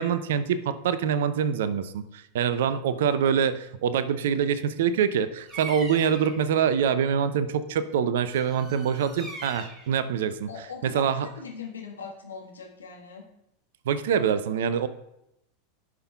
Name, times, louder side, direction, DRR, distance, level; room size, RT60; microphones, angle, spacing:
voice 1, 0.0-10.5 10.8-11.3 13.9-14.9, right 7 dB, 65° right, 13 dB, 0.5 m, -25 dB
Bird vocalization bird call bird song, 5.4-6.4 8.3-9.9, right 3 dB, 20° right, 2.5 m, -41 dB
voice 2, 10.5-13.2, left 5 dB, 80° left, 0 dB, 1.4 m, -40 dB
14.5 x 6.0 x 2.3 m, 0.83 s
figure-of-eight pair, 85°, 0 cm